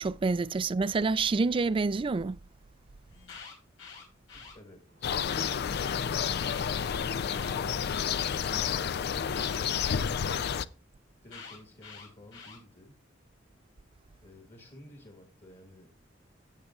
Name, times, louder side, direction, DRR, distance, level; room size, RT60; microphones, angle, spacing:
voice 1, 0.0-2.4, right 4 dB, 25° right, 0.3 m, -27 dB
Alarm, 3.1-4.5 5.2-6.5 7.2-8.5 9.3-10.6 11.3-12.6, left 5 dB, 80° left, 4.4 m, -47 dB
voice 2, 4.5-10.2 11.2-13.0 14.2-15.9, left 1 dB, 35° left, 1.6 m, -52 dB
Animal, 4.8-10.7, right 4 dB, 75° right, 1.3 m, -57 dB
sound 1, 5.0-10.7, left 7 dB, 55° left, 0.4 m, -30 dB
15.5 x 6.6 x 2.4 m
head